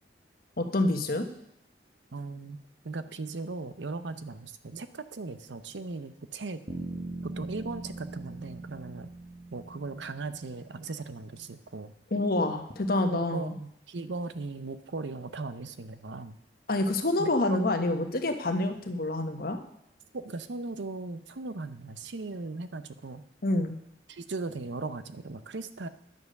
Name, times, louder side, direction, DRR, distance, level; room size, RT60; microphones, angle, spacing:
voice 1, 0.6-1.3 12.1-13.5 16.7-19.6 23.4-23.7, left 2 dB, 55° left, 6 dB, 1.2 m, -27 dB
voice 2, 2.1-2.6 2.8-6.6 7.2-9.1 9.5-11.9 13.1-16.4 17.2-17.6 20.1-23.2 24.1-25.9, right 3 dB, 80° right, 12 dB, 0.7 m, -38 dB
sound 1, 6.7-10.7, right 2 dB, 45° right, 1.6 m, -41 dB
10.5 x 7.2 x 6.5 m, 0.77 s
head